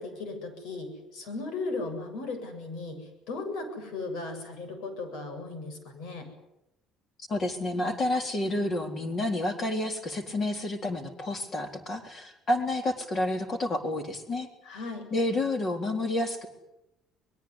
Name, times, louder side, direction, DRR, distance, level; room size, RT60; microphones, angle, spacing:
voice 1, 0.0-3.0 3.3-6.3 14.6-15.0, left 3 dB, 80° left, 8 dB, 7.5 m, -36 dB
voice 2, 7.3-14.5 15.1-16.5, left 1 dB, 30° left, 6 dB, 3.8 m, -29 dB
24.0 x 21.5 x 9.8 m, 0.89 s
cardioid pair, 170°, 0 cm